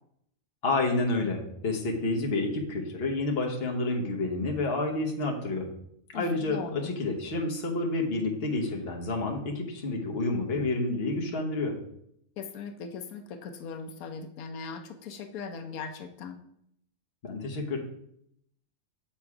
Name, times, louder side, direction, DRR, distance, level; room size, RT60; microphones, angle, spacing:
voice 1, 0.6-5.7 6.1-11.7 17.2-17.8, left 2 dB, 45° left, 1 dB, 1.3 m, -29 dB
voice 2, 6.1-6.9 12.4-16.4, left 5 dB, 90° left, 7 dB, 1.1 m, -39 dB
6.8 x 4.3 x 4.8 m, 0.73 s
omnidirectional pair, 1.5 m